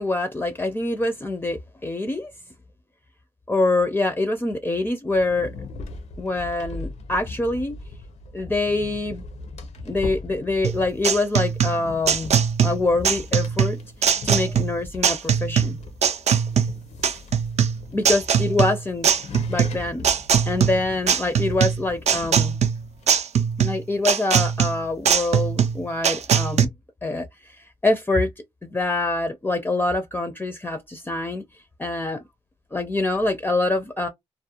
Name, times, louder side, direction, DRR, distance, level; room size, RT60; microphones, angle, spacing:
voice 1, 0.0-2.3 3.5-5.5 6.2-7.8 8.3-9.2 9.8-13.8 14.2-15.8 17.9-20.1 20.5-22.6 23.6-26.7 27.0-27.6 27.8-28.3 28.6-31.4 31.8-32.2 32.7-34.1, left 2 dB, 15° left, 0.4 m, -25 dB
sound 1, 5.1-23.2, left 3 dB, 80° left, 0.6 m, -40 dB
sound 2, 10.6-26.7, right 7 dB, 75° right, 0.4 m, -21 dB
2.4 x 2.0 x 2.7 m
cardioid pair, 90°, 11 cm